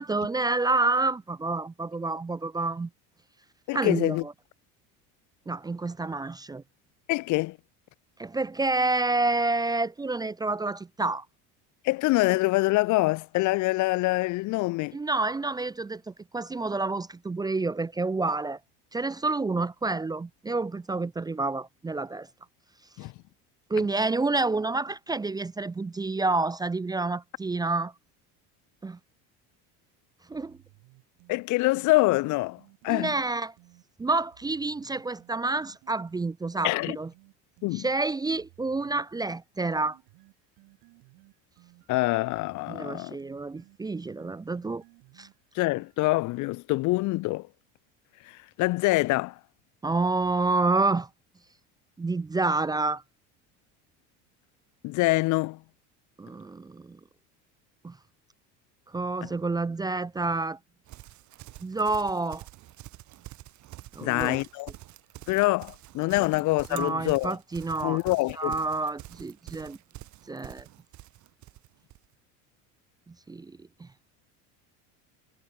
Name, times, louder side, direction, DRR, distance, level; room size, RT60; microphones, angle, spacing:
voice 1, 0.0-2.9 3.7-4.3 5.5-6.6 8.2-11.2 14.9-18.6 18.9-22.3 23.7-27.9 28.8-29.0 30.3-30.6 32.9-33.5 34.0-37.1 37.7-40.0 42.7-44.8 45.2-45.3 49.8-51.1 52.0-53.0 56.2-57.0 57.8-58.0 58.9-60.6 61.6-62.4 63.9-64.4 66.2-66.3 66.7-68.0 68.4-69.8 70.3-70.7 73.1-73.9, right 3 dB, 10° right, 0.7 m, -28 dB
voice 2, 3.7-4.2 7.1-7.6 11.8-15.0 23.0-23.1 31.3-33.1 36.6-37.0 37.6-37.9 41.9-43.2 45.5-47.5 48.6-49.3 54.8-55.6 64.0-64.7 65.3-67.4 67.8-68.6, left 21 dB, 55° left, 1.0 m, -25 dB
sound 1, 30.3-33.9 34.3-37.9 38.3-46.1, right 29 dB, 70° right, 6.2 m, -58 dB
Livestock farm animals working animals, 60.9-72.1, right 16 dB, 55° right, 5.3 m, -47 dB
cardioid pair, 125°, 35 cm